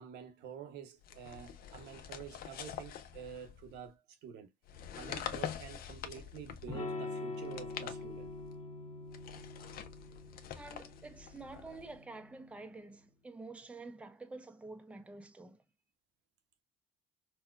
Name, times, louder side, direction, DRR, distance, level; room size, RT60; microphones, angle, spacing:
voice 1, 0.0-4.5 4.9-8.3, right 8 dB, 85° right, 0.8 m, -48 dB
sound 1, 1.0-3.8 4.6-6.8 7.4-8.5 9.1-12.0, left 9 dB, 60° left, 0.6 m, -45 dB
Electric guitar / Strum, 6.7-12.4, left 3 dB, 35° left, 1.4 m, -44 dB
voice 2, 10.6-15.6, right 3 dB, 5° right, 0.5 m, -49 dB
4.1 x 2.2 x 2.3 m
cardioid pair, 110°, 17 cm